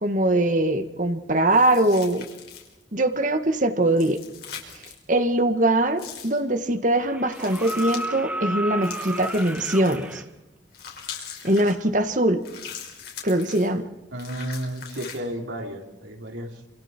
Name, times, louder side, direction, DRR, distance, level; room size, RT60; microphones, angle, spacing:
voice 1, 0.0-2.3 2.9-4.2 5.1-10.2 11.4-12.4 13.2-13.8, right 1 dB, 40° right, 8 dB, 1.9 m, -22 dB
sound 1, 1.5-2.8 3.9-5.0 6.0-6.4 7.3-8.1 8.8-10.2 10.7-11.8 12.4-13.7 14.2-15.2, left 8 dB, 55° left, 6.1 m, -41 dB
sound 2, 7.0-10.2 12.0-12.1, right 1 dB, 10° right, 2.1 m, -32 dB
voice 2, 14.1-16.7, equal, 80° right, 1 dB, 4.3 m, -33 dB
29.5 x 28.0 x 4.6 m, 1.0 s
head